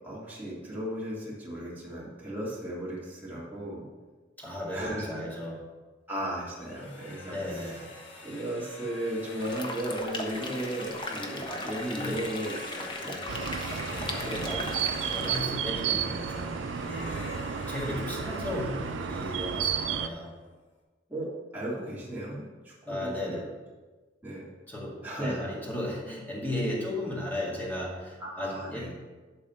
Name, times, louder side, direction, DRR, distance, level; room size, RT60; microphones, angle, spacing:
voice 1, 0.0-3.8 4.7-5.1 6.1-7.3 8.2-13.2 21.1-23.4 24.2-24.5 25.0-25.4 28.2-28.9, right 1 dB, 10° right, -8 dB, 2.9 m, -35 dB
voice 2, 4.4-5.7 7.3-7.9 11.5-12.3 13.9-20.4 22.9-23.6 24.7-28.9, left 1 dB, 10° left, -4 dB, 2.1 m, -35 dB
sound 1, 6.5-20.3, left 1 dB, 75° left, 2.1 m, -44 dB
sound 2, 9.4-15.4, left 2 dB, 25° left, 1.0 m, -38 dB
sound 3, 13.3-20.1, right 7 dB, 75° right, 0.5 m, -32 dB
11.5 x 4.1 x 5.8 m, 1.3 s
head